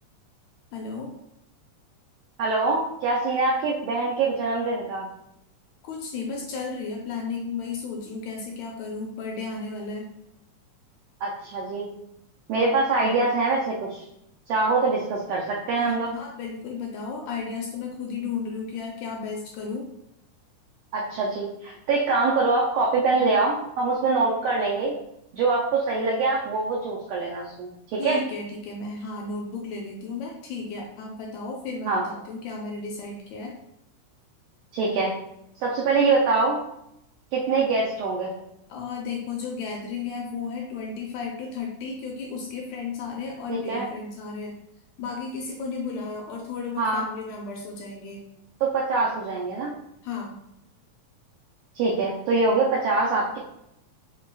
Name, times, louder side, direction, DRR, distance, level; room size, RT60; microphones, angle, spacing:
voice 1, 0.7-1.1 5.8-10.1 15.8-19.9 23.0-23.4 28.0-33.5 38.7-44.6 45.0-48.2 50.0-50.4, left 4 dB, 80° left, 0 dB, 1.7 m, -34 dB
voice 2, 2.4-5.1 11.2-11.9 12.5-14.1 14.5-16.1 20.9-24.9 25.3-28.2 31.9-32.0 34.7-35.2 35.5-36.6 37.3-38.3 43.5-43.9 46.8-47.1 48.6-49.7 51.7-53.4, right 3 dB, 85° right, -3 dB, 1.4 m, -24 dB
5.8 x 2.2 x 2.2 m, 0.81 s
omnidirectional pair, 3.5 m